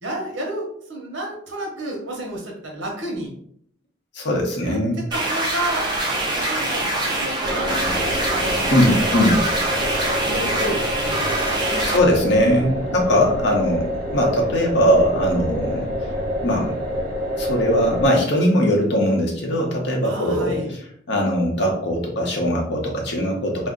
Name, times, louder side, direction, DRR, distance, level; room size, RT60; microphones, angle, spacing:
voice 1, 0.0-3.3 4.6-4.8 5.1-5.9 6.3-8.0 8.3-8.6 8.9-9.8 10.2-11.9 13.0-13.2 15.7-15.8 20.0-20.7, right 1 dB, 80° right, 0 dB, 0.9 m, -31 dB
voice 2, 4.1-5.0 8.7-9.4 11.8-15.9 16.4-16.8 17.4-20.8 21.1-23.7, equal, 65° left, 0 dB, 0.8 m, -20 dB
sound 1, 5.1-12.0, right 1 dB, 25° right, 0.6 m, -24 dB
sound 2, 7.4-18.1, equal, 55° right, 0.9 m, -27 dB
2.5 x 2.0 x 3.6 m, 0.66 s
head